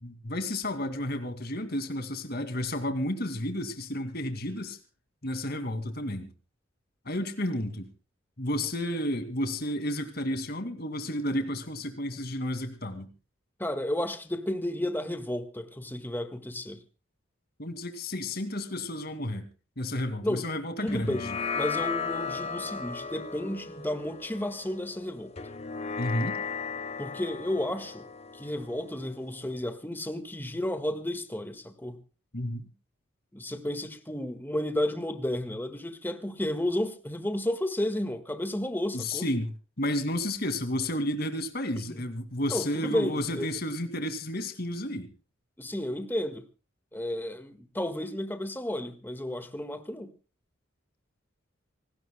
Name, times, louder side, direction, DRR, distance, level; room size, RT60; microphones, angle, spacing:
voice 1, 0.0-4.8 5.2-6.3 7.1-7.9 8.4-13.1 17.6-19.5 19.8-21.4 26.0-26.4 32.3-32.6 38.9-39.5 39.8-45.1, left 1 dB, 50° left, 2.2 m, -32 dB
voice 2, 13.6-16.8 20.2-20.5 20.8-21.2 21.5-25.3 27.0-28.0 28.3-32.0 33.3-39.3 41.9-42.0 42.5-43.5 45.6-46.4 46.9-50.1, left 1 dB, 10° left, 1.6 m, -32 dB
sound 1, 20.9-29.6, left 5 dB, 30° left, 0.7 m, -36 dB
26.5 x 19.0 x 2.2 m
head